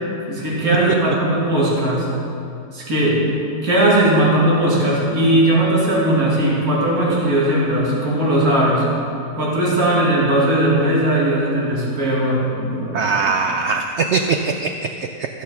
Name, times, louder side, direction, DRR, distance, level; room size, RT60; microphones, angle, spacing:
voice 1, 0.3-2.1 2.7-3.3 3.6-8.8 9.4-13.1, right 1 dB, 60° right, -6 dB, 2.9 m, -18 dB
voice 2, 12.9-15.3, right 4 dB, 80° right, 6 dB, 0.6 m, -21 dB
14.5 x 6.4 x 6.2 m, 2.6 s
omnidirectional pair, 1.8 m